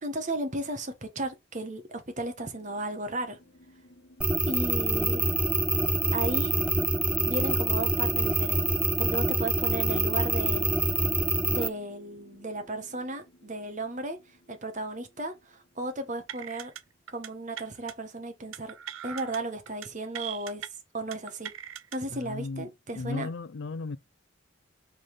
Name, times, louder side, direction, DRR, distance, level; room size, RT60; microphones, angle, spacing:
voice 1, 0.0-3.4 4.5-5.3 6.1-6.5 7.2-8.6 9.0-10.7 11.5-14.2 14.5-16.7 17.1-18.7 19.0-20.7 20.9-21.5 21.9-23.3, right 2 dB, 40° right, 1.4 m, -35 dB
sound 1, 2.4-17.0, left 1 dB, 45° left, 1.2 m, -53 dB
sound 2, 4.2-11.7, right 2 dB, 5° right, 0.4 m, -26 dB
sound 3, 16.3-16.8 17.1-17.3 17.6-17.9 18.5-19.4 19.7-19.9 20.1-20.7 21.1-22.0, right 10 dB, 85° right, 0.6 m, -39 dB
voice 2, 22.1-24.0, left 3 dB, 60° left, 0.5 m, -36 dB
5.3 x 4.0 x 5.0 m
head